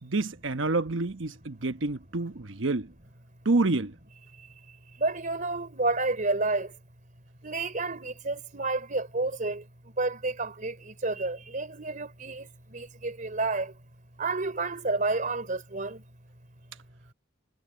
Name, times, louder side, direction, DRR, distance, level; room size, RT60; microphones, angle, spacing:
voice 1, 0.0-2.9 3.4-3.9, right 3 dB, 75° right, 1.1 m, -28 dB
voice 2, 5.0-6.7 7.4-13.7 14.2-16.0 17.1-17.2, right 3 dB, 45° right, 3.6 m, -30 dB
head